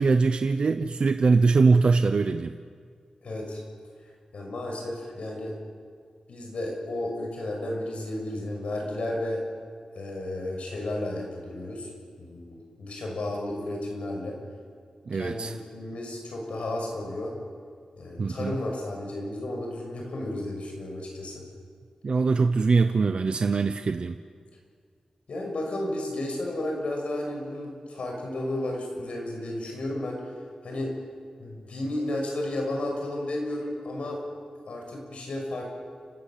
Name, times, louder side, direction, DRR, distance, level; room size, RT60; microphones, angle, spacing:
voice 1, 0.0-2.6 15.1-15.6 18.2-18.5 22.0-24.2, right 4 dB, 55° right, 8 dB, 0.7 m, -22 dB
voice 2, 3.2-3.6 4.3-5.6 6.3-9.4 10.0-11.9 12.2-14.4 15.1-17.4 18.0-21.4 25.3-30.2 30.6-30.9 31.4-34.2 34.7-35.7, left 1 dB, 80° left, 1 dB, 6.1 m, -33 dB
29.5 x 13.5 x 8.5 m, 2.1 s
wide cardioid pair, 140°, 2 cm